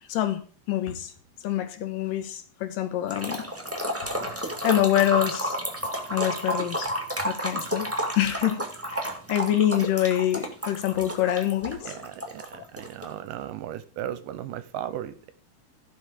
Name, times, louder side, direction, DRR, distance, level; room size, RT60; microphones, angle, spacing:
voice 1, 0.1-0.4 0.7-1.1 1.4-3.5 4.0-5.6 6.1-6.9 7.2-12.0, left 12 dB, 75° left, 2.8 m, -26 dB
sound 1, 3.1-13.1, right 1 dB, 10° right, 0.9 m, -31 dB
voice 2, 11.9-15.3, right 11 dB, 80° right, 2.1 m, -36 dB
16.0 x 5.9 x 5.0 m
omnidirectional pair, 4.1 m